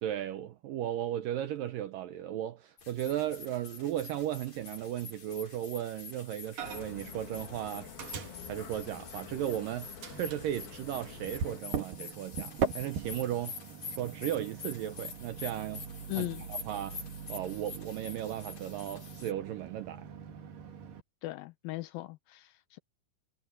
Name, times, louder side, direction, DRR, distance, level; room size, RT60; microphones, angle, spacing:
voice 1, 0.0-7.9 8.5-13.6 13.9-15.8 16.2-17.0 17.3-20.1, right 11 dB, 80° right, 2.0 m, -36 dB
sound 1, 2.8-19.3, left 5 dB, 40° left, 5.3 m, -47 dB
sound 2, 6.6-11.6, left 7 dB, 60° left, 4.2 m, -48 dB
Microwave oven, 6.6-7.1 7.3-9.6 10.0-21.0, right 6 dB, 55° right, 3.6 m, -41 dB
voice 2, 16.1-16.5 21.2-22.8, left 19 dB, 85° left, 2.0 m, -38 dB
omnidirectional pair, 5.0 m